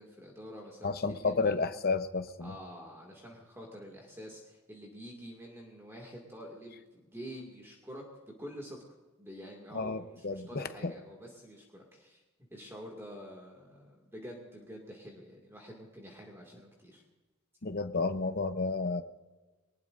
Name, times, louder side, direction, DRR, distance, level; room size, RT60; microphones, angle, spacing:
voice 1, 0.0-1.5 2.4-8.0 8.4-8.8 9.2-12.2 12.5-17.0, equal, 10° right, -1 dB, 2.3 m, -47 dB
voice 2, 0.8-2.5 9.7-10.9 17.6-19.0, left 3 dB, 45° left, 9 dB, 0.8 m, -31 dB
22.5 x 20.0 x 2.6 m, 1.2 s
head